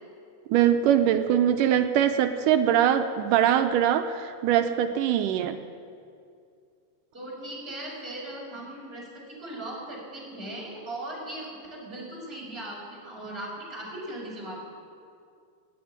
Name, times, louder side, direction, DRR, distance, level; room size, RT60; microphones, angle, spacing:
voice 1, 0.5-5.6, right 10 dB, 80° right, 8 dB, 2.2 m, -22 dB
voice 2, 7.1-14.6, right 1 dB, 15° right, -4 dB, 4.5 m, -38 dB
16.5 x 9.5 x 8.7 m, 2.3 s
omnidirectional pair, 3.9 m